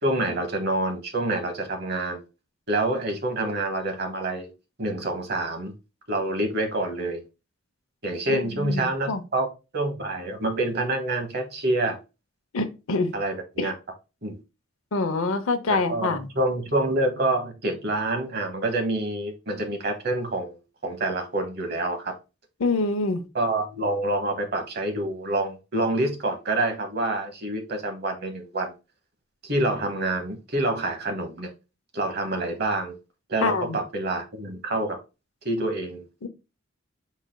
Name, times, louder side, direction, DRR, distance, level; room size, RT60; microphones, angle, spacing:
voice 1, 0.0-2.2 2.7-4.5 4.8-5.7 6.1-7.2 8.0-9.5 9.7-12.0 13.1-13.7 14.2-14.4 15.7-20.6 20.8-22.1 23.3-28.7 29.4-31.5 31.9-33.0 33.3-35.0 35.4-36.0, right 2 dB, 50° right, 1.0 m, -27 dB
voice 2, 8.3-9.2 12.5-13.1 13.6-13.7 14.9-16.3 22.6-23.2 33.4-33.8 36.2-36.3, left 3 dB, 85° left, 0.7 m, -26 dB
5.1 x 4.0 x 2.2 m
head